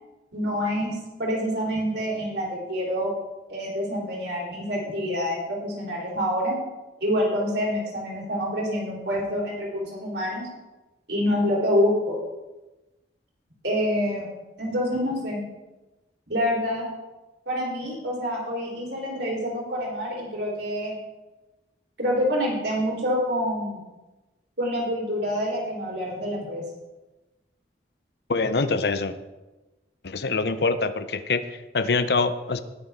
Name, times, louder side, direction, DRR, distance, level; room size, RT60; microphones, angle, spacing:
voice 1, 0.3-0.9 1.2-3.1 3.5-6.6 7.0-10.5 11.1-12.2 13.6-14.3 14.6-15.4 16.3-16.9 17.5-21.0 22.0-23.8 24.6-26.6, equal, 75° right, -3 dB, 3.7 m, -26 dB
voice 2, 28.3-29.1 30.0-32.6, left 4 dB, 65° left, 11 dB, 0.7 m, -25 dB
19.5 x 6.5 x 3.6 m, 1.1 s
head